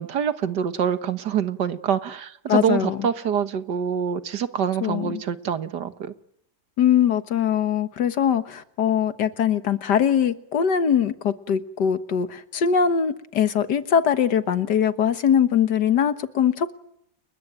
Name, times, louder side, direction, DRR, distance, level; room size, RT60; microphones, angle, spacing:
voice 1, 0.0-6.1, right 8 dB, 85° right, 11 dB, 2.0 m, -25 dB
voice 2, 2.5-3.1 4.8-5.2 6.8-16.7, left 8 dB, 90° left, 11 dB, 2.0 m, -22 dB
30.0 x 21.5 x 9.2 m, 0.75 s
omnidirectional pair, 1.8 m